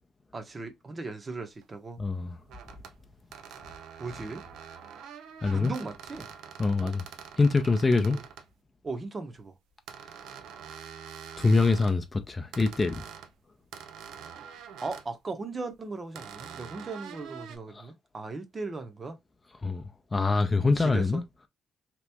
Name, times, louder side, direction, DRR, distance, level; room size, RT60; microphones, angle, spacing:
voice 1, 0.3-2.0 4.0-4.4 5.5-6.3 6.8-7.0 8.1-8.2 8.8-9.5 14.8-19.2 20.8-21.2, right 3 dB, 30° right, 0.8 m, -37 dB
sound 1, 1.6-1.7 2.5-2.9 3.3-8.5 9.9-12.0 12.5-13.3 13.7-15.1 16.1-17.6, right 7 dB, 85° right, 0.5 m, -45 dB
voice 2, 2.0-2.4 5.4-5.7 6.6-7.0 7.4-8.2 11.4-13.0 17.7-17.9 19.6-19.8 20.1-21.2, left 3 dB, 25° left, 0.5 m, -24 dB
2.9 x 2.5 x 3.4 m
cardioid pair, 90°, 0 cm